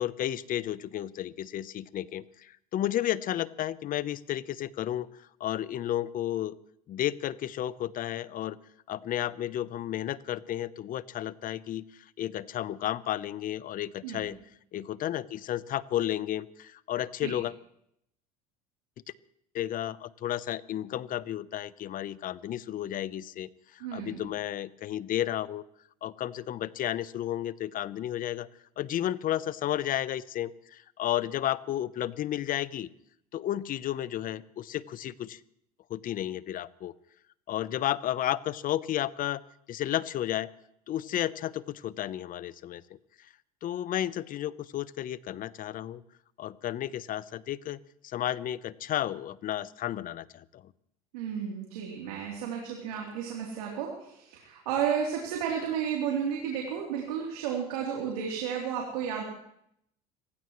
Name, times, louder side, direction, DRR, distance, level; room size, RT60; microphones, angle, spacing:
voice 1, 0.0-6.5 6.9-8.6 8.9-14.4 14.7-17.5 19.5-25.6 26.0-28.5 28.8-32.9 33.3-35.4 35.9-36.9 37.5-39.4 39.7-40.5 40.9-43.0 43.6-46.0 46.4-50.7, left 12 dB, 45° left, 17 dB, 0.8 m, -32 dB
voice 2, 23.8-24.3 51.1-59.2, right 8 dB, 80° right, -1 dB, 3.4 m, -32 dB
27.5 x 16.0 x 3.2 m, 0.73 s
hypercardioid pair, 80°, 19 cm